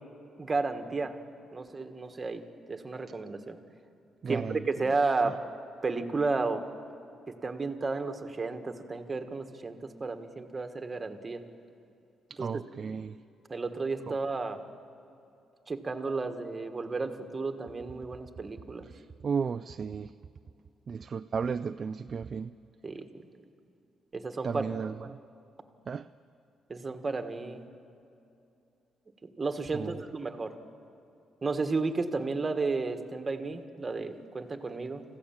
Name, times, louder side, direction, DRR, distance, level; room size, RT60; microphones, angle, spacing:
voice 1, 0.4-1.1 1.5-3.6 4.3-5.4 5.8-6.7 7.3-11.4 12.4-12.5 13.5-14.6 15.7-18.9 22.8-23.3 24.1-24.6 26.7-27.6 29.4-30.5 31.4-35.0, right 3 dB, 30° right, 7 dB, 1.5 m, -32 dB
voice 2, 4.2-4.9 5.2-5.3 12.3-13.2 14.1-14.2 18.9-20.1 20.9-22.5 24.4-25.2 25.9-26.1 29.7-30.1, right 6 dB, 45° right, 11 dB, 0.4 m, -34 dB
25.5 x 15.5 x 7.3 m, 2.6 s
cardioid pair, 90°, 0 cm